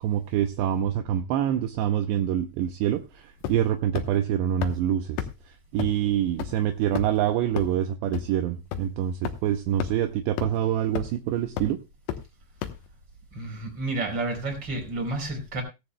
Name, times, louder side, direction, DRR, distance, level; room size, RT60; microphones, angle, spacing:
voice 1, 0.0-5.2 5.7-11.8, right 11 dB, 80° right, 6 dB, 2.8 m, -26 dB
sound 1, 3.4-3.7 4.0-4.1 4.6-4.7 5.2-5.3 5.8-5.9 6.4-6.5 7.0-7.2 7.6-7.7 8.1-8.2 8.7-8.8 9.2-9.3 9.8-9.9 10.4-10.5 11.0-11.2 11.6-11.7 12.1-12.2 12.6-12.7, left 11 dB, 75° left, 3.0 m, -30 dB
voice 2, 13.3-15.6, right 2 dB, 25° right, 4 dB, 4.0 m, -30 dB
17.0 x 14.0 x 2.3 m, 0.26 s
omnidirectional pair, 5.3 m